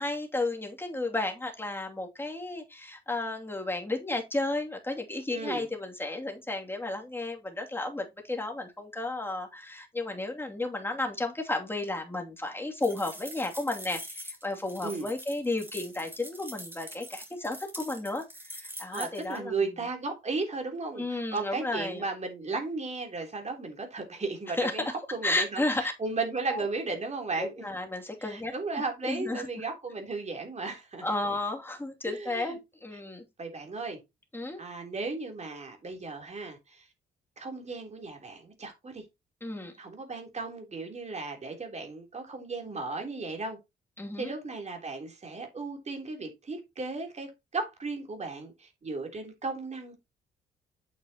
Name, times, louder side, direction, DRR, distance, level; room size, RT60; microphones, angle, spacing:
voice 1, 0.0-18.2 18.5-19.5 21.0-22.0 24.6-24.7 25.2-25.9 26.5-26.7 27.4-28.5 29.0-29.5 31.0-33.2 34.3-34.6 39.4-39.7 44.0-44.3, left 2 dB, 10° left, 2.6 m, -33 dB
voice 2, 5.3-5.7 14.8-15.1 18.9-27.5 28.2-31.0 32.0-32.6 33.4-34.0 34.6-36.9 37.4-39.0 39.8-43.6 44.2-50.0, right 3 dB, 35° right, 3.4 m, -35 dB
sound 1, 12.8-19.4, equal, 10° right, 2.8 m, -44 dB
8.7 x 6.8 x 2.9 m
cardioid pair, 90°, 20 cm